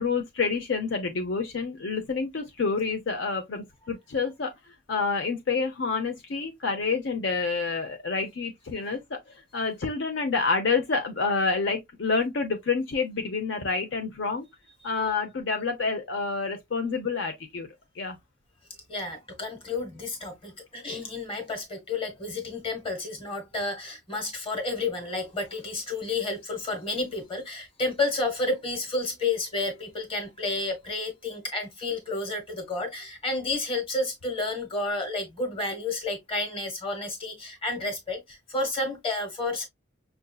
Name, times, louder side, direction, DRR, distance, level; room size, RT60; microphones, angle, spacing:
voice 1, 0.0-4.5 4.9-14.4 14.8-17.7 17.9-18.2, left 4 dB, 65° left, 0.6 m, -28 dB
voice 2, 18.9-39.7, left 2 dB, 25° left, 1.3 m, -31 dB
5.6 x 2.6 x 2.2 m
head